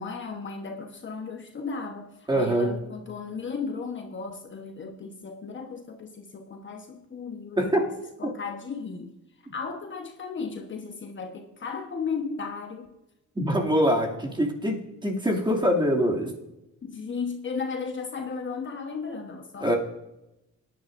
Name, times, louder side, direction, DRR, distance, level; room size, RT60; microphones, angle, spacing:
voice 1, 0.0-7.9 8.2-9.1 9.5-12.9 16.8-19.7, left 5 dB, 40° left, 1.1 m, -35 dB
voice 2, 2.3-2.7 7.6-7.8 8.2-8.3 13.4-16.3 19.6-19.8, equal, 15° right, 2.5 m, -24 dB
19.0 x 10.5 x 2.6 m
cardioid pair, 90°, 30 cm